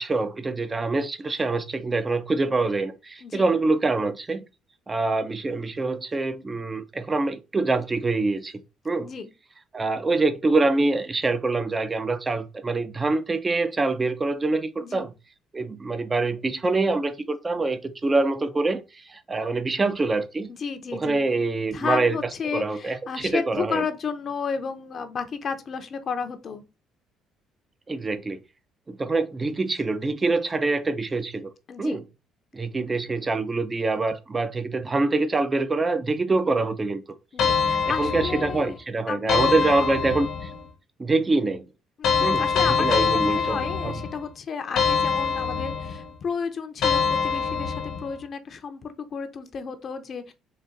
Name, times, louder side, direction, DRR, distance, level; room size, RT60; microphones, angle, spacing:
voice 1, 0.0-4.4 4.9-8.5 8.8-9.1 9.7-15.1 15.5-20.5 20.9-22.2 22.5-23.8 27.9-28.4 28.9-31.5 31.8-32.0 32.5-37.0 37.9-40.5 41.0-41.7 42.2-44.0, right 3 dB, 25° right, 0.6 m, -25 dB
voice 2, 9.0-9.3 14.8-15.1 20.5-21.3 21.7-26.6 31.7-32.0 37.3-38.8 39.1-39.6 42.0-42.9 43.1-50.3, left 6 dB, 50° left, 0.7 m, -32 dB
sound 1, 37.4-38.7 39.3-40.6 42.0-44.2 44.8-46.1 46.8-48.1, left 6 dB, 65° left, 1.0 m, -24 dB
4.0 x 2.6 x 3.8 m
supercardioid pair, 75°, 0 cm